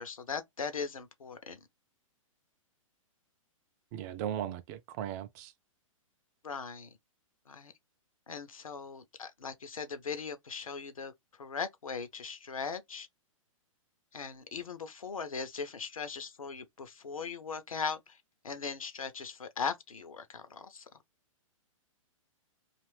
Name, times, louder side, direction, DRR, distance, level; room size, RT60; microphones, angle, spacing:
voice 1, 0.0-1.6 6.4-7.0 7.5-7.7 8.3-11.1 11.4-13.1 14.1-18.2 18.4-20.8, left 5 dB, 75° left, 0.6 m, -39 dB
voice 2, 3.9-5.5, right 10 dB, 30° right, 0.4 m, -37 dB
2.6 x 2.4 x 3.2 m
figure-of-eight pair, 115°, 18 cm